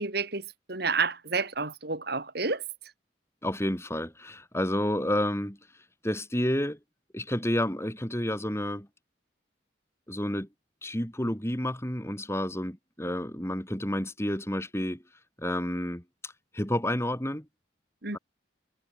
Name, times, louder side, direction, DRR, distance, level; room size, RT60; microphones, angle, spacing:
voice 1, 0.0-2.6 18.0-18.2, right 4 dB, 55° right, 3.1 m, -30 dB
voice 2, 3.4-5.6 6.0-6.8 7.1-8.9 10.1-10.5 10.8-15.0 15.4-17.5, left 1 dB, 15° left, 6.7 m, -30 dB
head